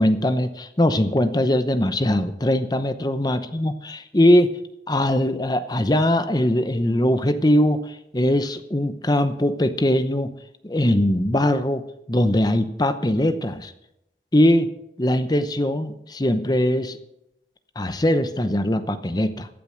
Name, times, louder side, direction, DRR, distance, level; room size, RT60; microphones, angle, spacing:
voice 1, 0.0-4.5 4.9-10.3 10.6-11.8 12.1-13.7 14.3-14.7 15.0-17.0 17.8-19.5, left 1 dB, 20° left, 11 dB, 0.8 m, -21 dB
15.0 x 9.0 x 6.3 m, 0.82 s
head